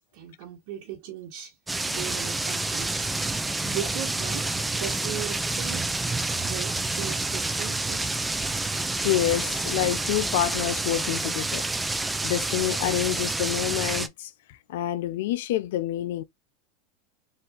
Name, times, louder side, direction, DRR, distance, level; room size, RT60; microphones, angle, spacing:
voice 1, 0.0-1.5 1.8-4.5 4.7-5.9 6.4-8.1, right 11 dB, 65° right, 1.5 m, -38 dB
sound 1, 1.7-14.1, right 2 dB, 10° right, 0.4 m, -28 dB
voice 2, 8.8-11.7 12.2-16.2, left 13 dB, 75° left, 0.5 m, -28 dB
4.2 x 2.6 x 3.6 m
hypercardioid pair, 115°, 0 cm